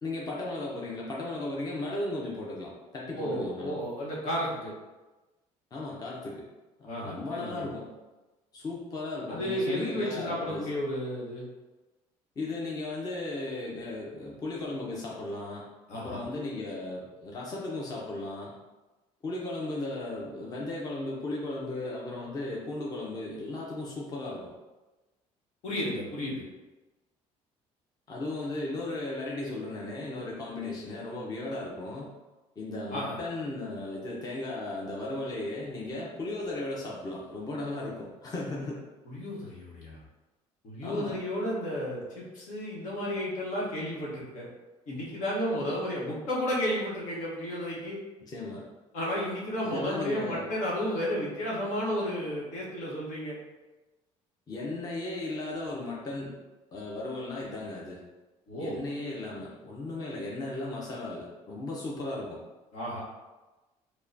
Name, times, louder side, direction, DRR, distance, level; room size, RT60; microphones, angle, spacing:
voice 1, 0.0-3.8 5.7-6.4 7.0-7.9 8.5-10.7 12.4-15.6 15.9-18.5 19.2-24.5 28.1-32.1 32.6-38.8 40.8-41.2 48.2-48.7 49.6-50.5 54.5-56.4 56.7-58.0 58.6-62.4, left 2 dB, 30° left, -4 dB, 0.7 m, -36 dB
voice 2, 3.1-4.7 6.8-7.6 9.3-11.5 15.9-16.2 25.6-26.4 32.9-33.1 39.1-40.0 40.6-44.5 44.9-48.0 48.9-53.4 58.5-58.8 62.7-63.0, equal, 70° left, -5 dB, 1.3 m, -32 dB
4.6 x 2.3 x 2.7 m, 1.1 s
cardioid pair, 110°, 13 cm